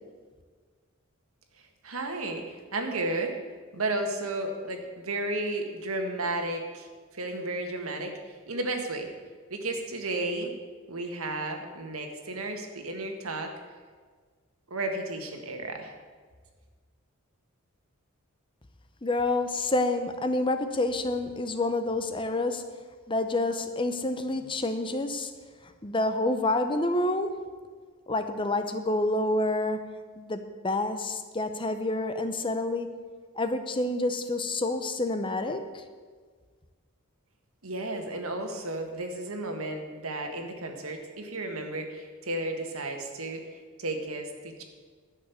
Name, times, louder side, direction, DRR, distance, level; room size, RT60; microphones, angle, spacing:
voice 1, 1.8-3.4 3.7-6.9 7.1-9.1 9.5-10.5 10.9-13.5 14.7-15.9 37.6-43.4 43.8-44.6, right 2 dB, 85° right, 4 dB, 1.7 m, -33 dB
voice 2, 19.0-22.6 23.1-25.3 25.8-27.3 28.1-29.8 30.2-32.9 33.4-35.6, left 2 dB, 25° left, 8 dB, 0.7 m, -28 dB
11.5 x 6.6 x 8.5 m, 1.5 s
head